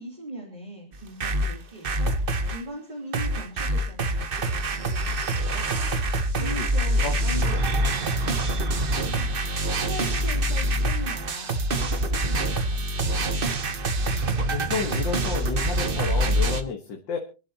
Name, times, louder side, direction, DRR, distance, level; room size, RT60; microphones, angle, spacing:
voice 1, 0.0-13.6, right 1 dB, 25° right, -2 dB, 3.1 m, -41 dB
sound 1, 0.9-2.6 3.1-16.6, right 1 dB, 40° right, 0.9 m, -25 dB
voice 2, 14.5-17.2, left 6 dB, 80° left, 2 dB, 2.2 m, -31 dB
27.5 x 11.0 x 2.9 m, 0.32 s
omnidirectional pair, 2.0 m